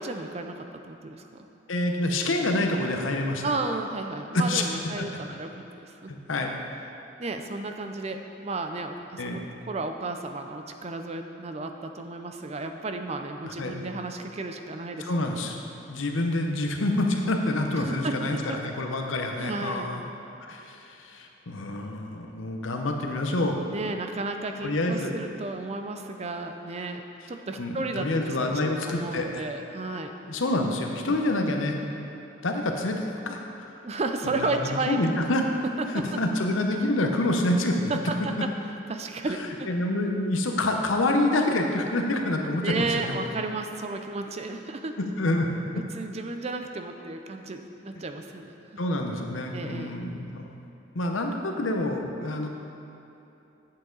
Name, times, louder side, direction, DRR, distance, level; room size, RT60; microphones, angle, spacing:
voice 1, 0.0-1.5 3.4-6.1 7.2-15.4 17.8-18.6 19.4-19.9 23.7-27.0 27.3-30.1 31.1-31.2 33.8-35.0 35.8-36.2 37.8-38.5 38.9-39.7 42.6-45.0 45.7-48.8 49.5-49.9, right 3 dB, 35° right, 6 dB, 0.4 m, -33 dB
voice 2, 1.7-3.4 4.3-4.6 5.0-5.1 6.1-6.5 9.2-9.4 13.4-13.9 15.0-15.6 15.9-20.0 20.4-23.6 24.6-25.2 27.6-29.5 30.3-31.8 32.4-33.7 34.2-35.4 35.9-37.9 39.7-43.1 45.0-45.5 48.8-50.6 50.9-52.5, left 1 dB, 90° left, 3 dB, 0.8 m, -27 dB
8.4 x 7.7 x 3.9 m, 2.9 s
head